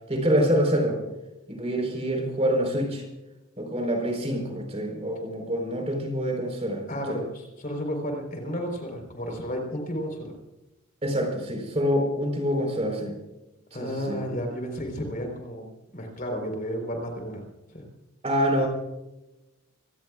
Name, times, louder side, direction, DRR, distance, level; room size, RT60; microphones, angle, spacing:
voice 1, 0.1-1.0 1.5-3.1 3.6-6.8 7.1-7.2 11.0-13.2 13.8-14.2 18.2-18.7, equal, 30° right, 2 dB, 4.3 m, -26 dB
voice 2, 6.9-10.3 13.7-15.7 15.9-17.4 17.7-17.8, equal, 40° left, 3 dB, 4.0 m, -32 dB
26.0 x 18.5 x 2.4 m, 0.99 s
head